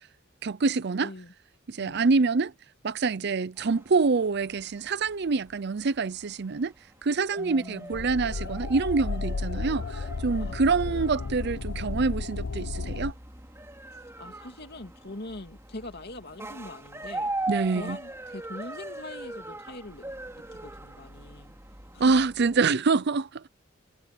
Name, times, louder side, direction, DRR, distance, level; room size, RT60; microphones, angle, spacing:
voice 1, 0.4-1.1 1.7-2.5 2.8-6.7 7.0-13.1 17.5-18.0 22.0-23.4, right 4 dB, 55° right, 0.6 m, -26 dB
voice 2, 1.0-1.3 1.8-2.0 7.4-8.0 10.4-10.6 10.9-11.1 14.2-17.3 17.7-20.1 20.3-21.5 21.9-22.0, left 2 dB, 55° left, 2.5 m, -43 dB
sound 1, 3.6-22.6, right 2 dB, 15° right, 2.8 m, -41 dB
sound 2, 7.9-13.1, left 3 dB, 75° left, 0.7 m, -33 dB
head